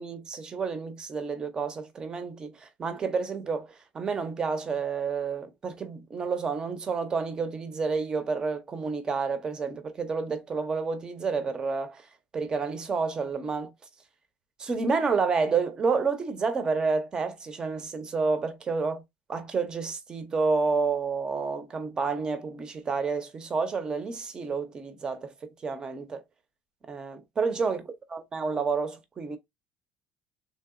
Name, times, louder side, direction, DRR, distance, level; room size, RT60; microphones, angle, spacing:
voice 1, 0.0-12.0 12.3-13.7 14.6-19.0 19.3-25.3 25.6-26.2 26.9-27.8 28.1-29.4, right 4 dB, 20° right, 0.5 m, -29 dB
3.4 x 2.6 x 2.3 m
cardioid pair, 170°, 4 cm